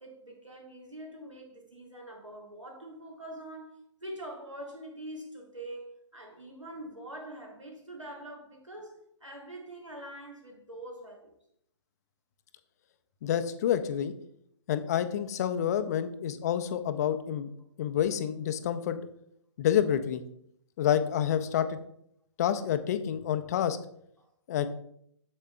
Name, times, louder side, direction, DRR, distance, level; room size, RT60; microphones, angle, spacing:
voice 1, 0.0-11.3 24.2-24.3, right 1 dB, 90° right, 1.8 m, -44 dB
voice 2, 13.2-14.1 14.7-17.5 17.8-19.0 19.6-20.2 20.8-21.8 22.4-23.8 24.5-24.7, left 9 dB, 35° left, 0.5 m, -28 dB
8.3 x 7.3 x 2.2 m
figure-of-eight pair, 125°, 15 cm